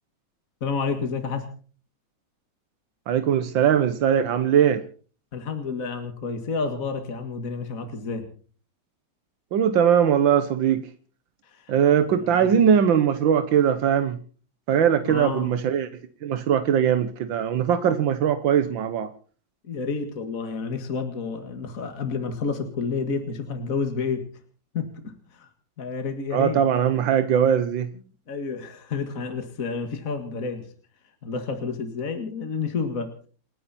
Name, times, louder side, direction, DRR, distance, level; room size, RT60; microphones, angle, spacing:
voice 1, 0.6-1.5 5.3-8.3 11.4-12.5 15.1-15.5 19.6-24.3 24.7-25.5 25.8-26.6 28.3-30.7 31.2-33.1, left 5 dB, 45° left, 7 dB, 2.3 m, -30 dB
voice 2, 3.1-4.8 9.5-10.8 11.7-14.2 14.7-15.9 16.2-19.1 26.3-27.9, right 8 dB, 90° right, 10 dB, 1.8 m, -20 dB
29.5 x 9.8 x 4.3 m, 0.41 s
omnidirectional pair, 2.0 m